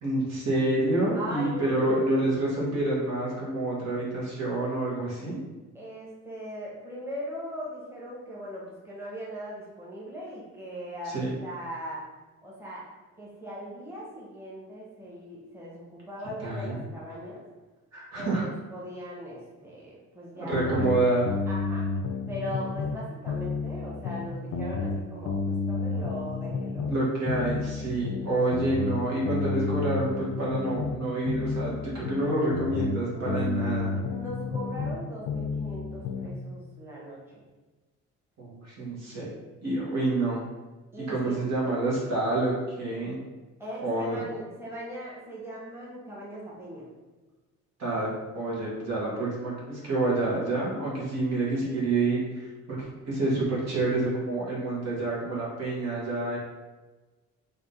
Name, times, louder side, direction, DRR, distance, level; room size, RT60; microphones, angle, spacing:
voice 1, 0.0-5.4 11.0-11.3 16.4-16.8 17.9-18.4 20.4-21.3 26.9-33.9 38.4-39.3 39.6-40.5 41.0-43.2 43.8-44.2 47.8-56.4, right 2 dB, 60° right, -5 dB, 1.4 m, -28 dB
voice 2, 1.1-2.6 5.7-11.2 11.4-12.0 12.4-12.8 13.2-17.4 18.1-21.0 21.5-21.9 22.3-26.9 33.1-33.5 34.1-37.4 40.9-41.5 43.6-46.9, equal, 10° right, -6 dB, 1.2 m, -39 dB
sound 1, 20.5-23.0 23.3-27.0 27.3-31.0 31.3-35.0 35.3-36.3, left 4 dB, 60° left, 0.5 m, -31 dB
3.6 x 2.7 x 3.7 m, 1.2 s
cardioid pair, 90°, 30 cm